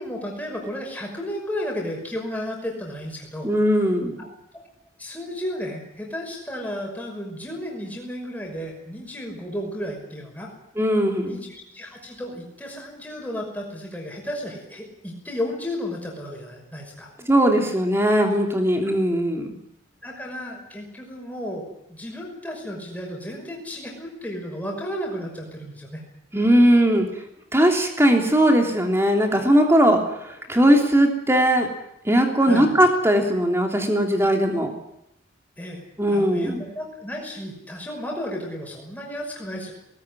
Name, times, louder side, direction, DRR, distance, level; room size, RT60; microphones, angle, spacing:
voice 1, 0.0-3.5 4.2-4.3 5.0-10.5 11.2-17.1 20.0-26.0 32.4-32.7 35.6-35.8 36.1-39.7, equal, 10° left, -1 dB, 5.8 m, -33 dB
voice 2, 3.4-4.2 10.8-11.4 17.3-19.5 26.3-27.1 27.5-30.0 30.5-31.7 32.0-34.7 36.0-36.7, equal, 15° right, 3 dB, 3.2 m, -19 dB
19.5 x 19.0 x 9.9 m, 0.83 s
head